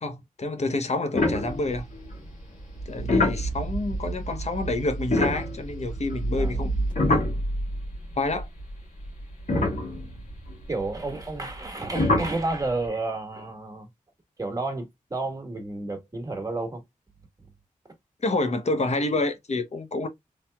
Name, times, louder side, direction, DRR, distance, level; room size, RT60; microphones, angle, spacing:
voice 1, 0.0-1.9 2.9-6.7 7.1-7.2 8.2-8.5 18.2-20.1, left 2 dB, 50° left, 0.8 m, -28 dB
sound 1, 1.1-2.1 2.8-8.0 8.3-8.4 9.0-9.1 9.5-10.5 11.9-12.4, left 1 dB, 70° left, 1.9 m, -26 dB
voice 2, 6.4-6.7 9.9-10.1 10.7-13.9 14.4-16.8, right 2 dB, 25° right, 1.4 m, -31 dB
3.2 x 2.8 x 2.2 m
cardioid pair, 50°, 14 cm